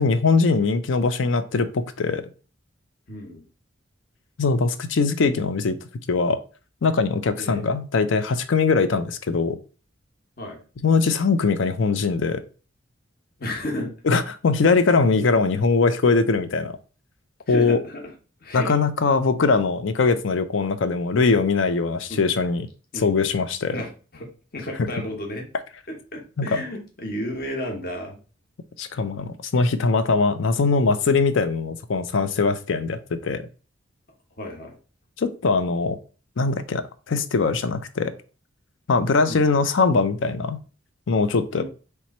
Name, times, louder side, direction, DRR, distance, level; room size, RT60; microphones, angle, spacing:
voice 1, 0.0-2.2 4.4-5.8 6.1-6.4 6.8-9.6 10.8-12.4 14.0-16.8 17.5-17.8 18.5-22.7 23.0-23.8 24.8-24.9 26.4-26.5 28.8-33.4 35.2-36.0 36.4-38.1 38.9-40.6 41.1-41.6, left 4 dB, 70° left, 11 dB, 0.5 m, -21 dB
voice 2, 3.1-3.4 7.4-7.6 10.4-10.6 13.4-13.9 17.5-18.0 18.4-18.8 22.1-22.3 22.9-23.1 23.7-25.4 25.9-28.2 34.4-34.7 39.3-39.4 41.6-41.7, left 1 dB, 45° left, 1 dB, 1.0 m, -32 dB
3.4 x 3.0 x 4.1 m, 0.36 s
head